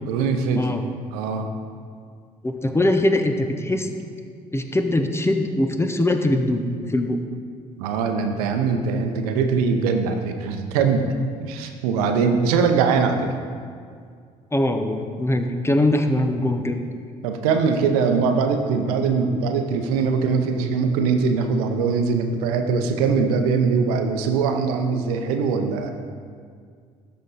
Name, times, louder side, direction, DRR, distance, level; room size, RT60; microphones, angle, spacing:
voice 1, 0.1-0.8 1.1-1.5 7.7-11.1 11.4-13.3 17.2-25.9, right 5 dB, 75° right, 5 dB, 0.7 m, -22 dB
voice 2, 2.4-3.9 4.5-7.2 14.5-16.8, left 1 dB, 15° left, 6 dB, 0.7 m, -22 dB
12.5 x 4.3 x 4.0 m, 2.1 s
hypercardioid pair, 55°, 19 cm